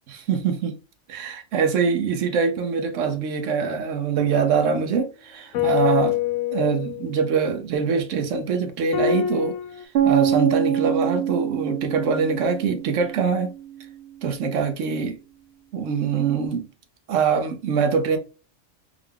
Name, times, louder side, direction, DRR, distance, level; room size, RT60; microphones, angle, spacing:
voice 1, 0.1-0.7 1.1-6.2 6.5-9.6 10.0-13.5 14.2-15.2 15.7-16.7 17.1-18.2, right 6 dB, 90° right, 1.0 m, -23 dB
sound 1, 5.5-8.2 8.9-9.8, left 11 dB, 90° left, 1.0 m, -26 dB
sound 2, 10.0-13.9, right 9 dB, 60° right, 0.8 m, -25 dB
3.8 x 2.2 x 3.2 m
omnidirectional pair, 1.3 m